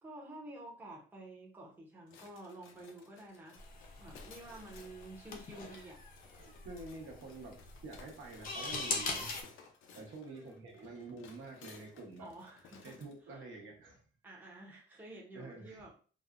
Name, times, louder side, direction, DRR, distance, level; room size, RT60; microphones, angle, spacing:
voice 1, 0.0-3.7 4.0-6.0 10.2-10.7 12.2-13.4 14.2-15.9, right 1 dB, 10° right, -3 dB, 0.6 m, -50 dB
sound 1, 2.1-13.2, left 5 dB, 85° left, 0.6 m, -59 dB
sound 2, 3.6-9.4, left 3 dB, 45° left, 0.6 m, -41 dB
voice 2, 6.4-9.7 9.9-12.3 12.8-14.0 15.3-15.8, right 3 dB, 75° right, 0 dB, 1.0 m, -48 dB
4.0 x 2.1 x 2.4 m, 0.40 s
cardioid pair, 175°, 20 cm